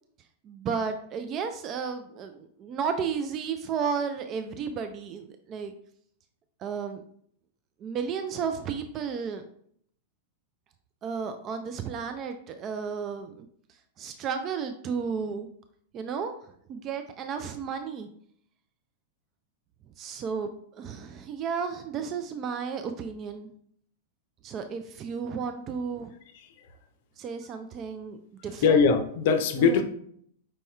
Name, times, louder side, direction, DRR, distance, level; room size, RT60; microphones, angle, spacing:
voice 1, 0.4-5.7 6.6-7.0 7.8-9.4 11.0-13.5 14.0-15.5 15.9-16.3 16.7-18.1 20.0-23.5 24.4-26.1 27.2-28.2 28.4-28.9 29.6-29.8, right 6 dB, 30° right, 7 dB, 0.4 m, -33 dB
voice 2, 28.6-29.8, left 5 dB, 50° left, 9 dB, 0.6 m, -21 dB
5.3 x 4.1 x 2.3 m, 0.64 s
figure-of-eight pair, 95°, 0 cm